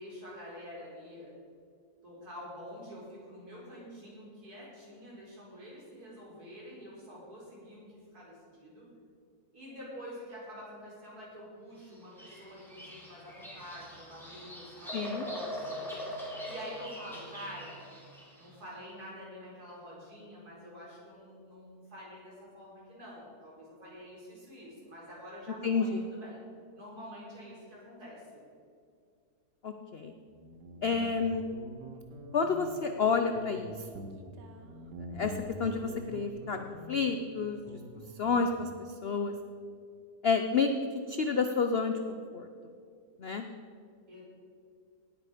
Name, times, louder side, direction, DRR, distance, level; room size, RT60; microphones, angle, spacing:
voice 1, 0.0-1.3 2.0-8.8 9.5-15.9 16.4-17.9 18.4-26.4 26.7-28.4 44.1-44.2, equal, 60° right, -5 dB, 4.9 m, -47 dB
Bird vocalization bird call bird song, 11.9-18.5, equal, ahead, 3.0 m, -42 dB
voice 2, 14.9-15.2 25.6-26.0 29.6-30.1 30.8-31.5 32.3-34.0 35.1-37.6 38.2-38.7 39.0-39.3 40.2-40.7 41.1-42.5 43.2-43.5, left 5 dB, 60° left, 6 dB, 0.6 m, -30 dB
Guitar, 30.3-38.8, right 1 dB, 75° right, 1.7 m, -46 dB
18.0 x 8.9 x 5.0 m, 2.3 s
omnidirectional pair, 1.8 m